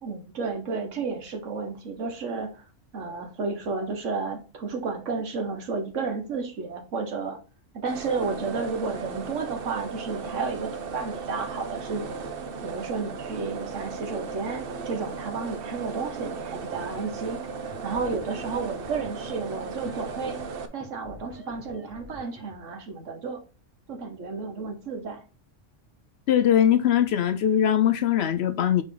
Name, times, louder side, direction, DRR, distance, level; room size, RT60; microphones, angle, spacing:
voice 1, 0.0-2.6 2.9-7.4 7.7-12.2 12.6-17.4 17.8-20.4 20.7-23.4 23.9-25.2, right 4 dB, 75° right, 1.5 m, -32 dB
sound 1, 7.9-20.7, right 5 dB, 55° right, 0.9 m, -36 dB
sound 2, 16.6-22.6, left 1 dB, 10° right, 1.2 m, -48 dB
voice 2, 26.3-28.8, left 10 dB, 65° left, 0.7 m, -21 dB
9.0 x 3.2 x 3.8 m
omnidirectional pair, 1.3 m